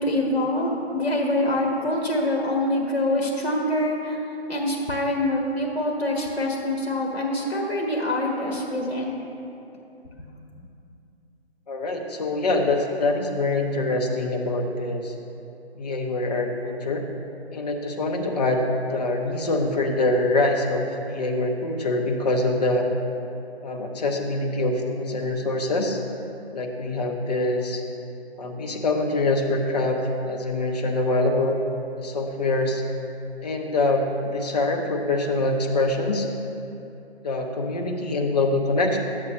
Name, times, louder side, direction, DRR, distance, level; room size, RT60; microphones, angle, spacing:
voice 1, 0.0-4.2 4.5-9.1, left 1 dB, 75° left, -1 dB, 1.5 m, -25 dB
voice 2, 11.7-15.1 15.7-17.0 17.5-18.6 18.9-22.9 23.6-26.0 26.5-27.8 28.4-31.6 31.9-32.8 33.4-36.3 37.2-39.0, left 2 dB, 40° left, 2 dB, 0.8 m, -24 dB
10.5 x 7.4 x 3.1 m, 2.7 s
figure-of-eight pair, 145°, 33 cm